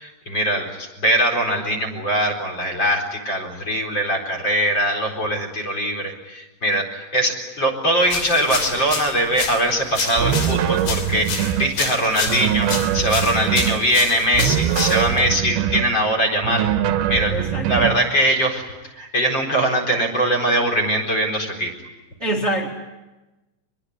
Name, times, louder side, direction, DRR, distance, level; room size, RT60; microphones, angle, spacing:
voice 1, 0.0-16.7 17.1-17.3 17.7-21.7, right 1 dB, 25° left, 5 dB, 4.4 m, -21 dB
sound 1, 8.0-15.3, left 6 dB, 85° left, 5.4 m, -29 dB
sound 2, 10.2-11.7 12.3-13.8 14.3-15.9 16.4-18.0, right 10 dB, 70° right, 2.6 m, -22 dB
voice 2, 17.3-18.0 22.2-22.7, right 1 dB, 30° right, 0 dB, 1.2 m, -25 dB
25.0 x 21.5 x 9.7 m, 1.1 s
omnidirectional pair, 5.2 m